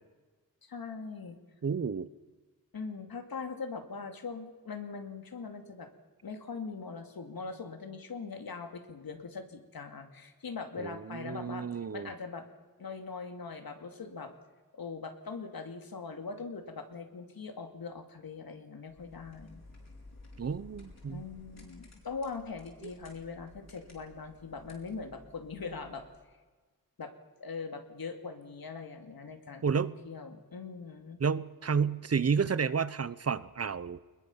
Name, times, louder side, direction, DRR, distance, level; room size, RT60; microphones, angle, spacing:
voice 1, 0.6-1.4 2.7-5.9 6.2-11.7 11.9-12.4 12.8-14.3 14.7-19.6 21.1-26.0 27.0-27.1 27.4-31.2, left 4 dB, 75° left, 6 dB, 2.4 m, -41 dB
voice 2, 1.6-2.1 10.8-12.1 20.4-21.2 29.6-29.9 31.2-34.0, right 6 dB, 45° right, 17 dB, 0.7 m, -31 dB
sound 1, 18.9-26.2, left 2 dB, 45° left, 5.5 m, -55 dB
22.5 x 21.0 x 7.2 m, 1.3 s
wide cardioid pair, 130°, 36 cm